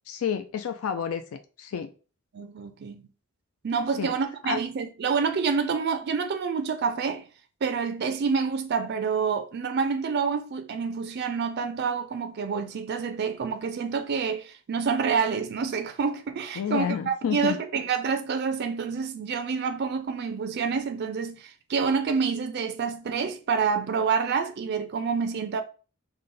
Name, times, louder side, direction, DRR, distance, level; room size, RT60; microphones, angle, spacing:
voice 1, 0.1-1.2 1.6-1.9 4.0-4.1 4.5-4.6 16.6-17.6, left 7 dB, 80° left, 0.4 m, -29 dB
voice 2, 2.3-3.0 3.6-7.2 7.6-25.6, right 5 dB, 50° right, 0.4 m, -28 dB
5.0 x 2.1 x 3.8 m
head